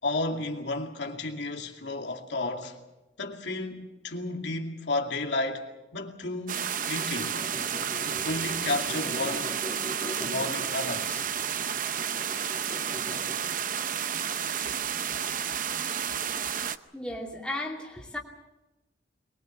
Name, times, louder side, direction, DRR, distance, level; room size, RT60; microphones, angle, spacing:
voice 1, 0.0-2.8 3.2-7.3 7.7-9.5 10.2-11.3, left 2 dB, 70° left, 2.4 m, -32 dB
sound 1, 6.5-16.8, right 8 dB, 45° right, 0.7 m, -31 dB
sound 2, 6.8-13.6, left 1 dB, 30° left, 2.4 m, -41 dB
voice 2, 16.9-18.2, left 1 dB, 5° left, 2.7 m, -35 dB
22.5 x 21.5 x 7.3 m
head